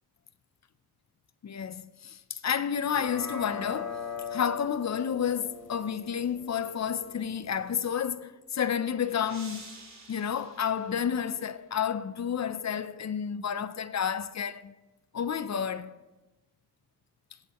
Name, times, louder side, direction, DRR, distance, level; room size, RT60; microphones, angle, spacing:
voice 1, 1.4-4.0 4.3-9.8 10.1-14.7 15.1-16.0, left 8 dB, 45° left, 0.5 m, -30 dB
sound 1, 2.9-7.9, left 6 dB, 65° left, 3.3 m, -40 dB
sound 2, 8.2-11.6, right 3 dB, 45° right, 2.8 m, -51 dB
18.5 x 9.3 x 3.0 m
cardioid pair, 80°, 39 cm